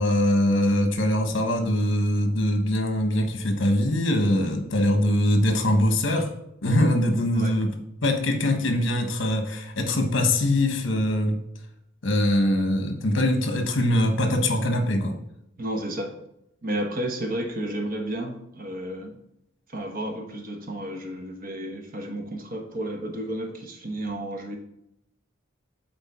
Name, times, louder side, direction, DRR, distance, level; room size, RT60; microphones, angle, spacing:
voice 1, 0.0-6.3 6.6-7.7 8.0-11.4 12.0-15.1, left 1 dB, 65° left, 6 dB, 1.1 m, -22 dB
voice 2, 15.6-16.1 16.6-19.2 19.7-24.6, right 1 dB, 45° right, 4 dB, 1.1 m, -32 dB
7.8 x 4.1 x 4.3 m, 0.78 s
head